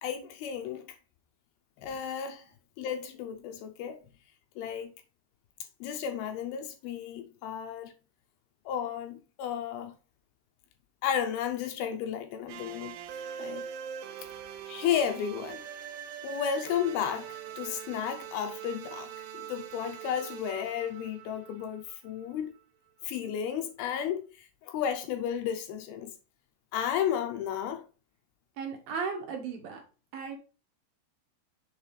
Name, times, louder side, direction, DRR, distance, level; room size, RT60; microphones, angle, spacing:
voice 1, 0.0-1.0 1.8-2.4 2.8-4.0 4.6-4.9 5.8-7.9 8.7-9.9 11.0-13.0 13.4-13.7 14.7-15.6 16.2-19.1 19.3-22.5 23.0-26.1 26.7-27.8, left 8 dB, 75° left, 2.5 m, -33 dB
sound 1, 12.5-22.4, right 9 dB, 90° right, 2.9 m, -43 dB
voice 2, 28.6-29.8 30.1-30.4, right 5 dB, 65° right, 2.9 m, -35 dB
7.4 x 3.7 x 4.8 m
omnidirectional pair, 4.7 m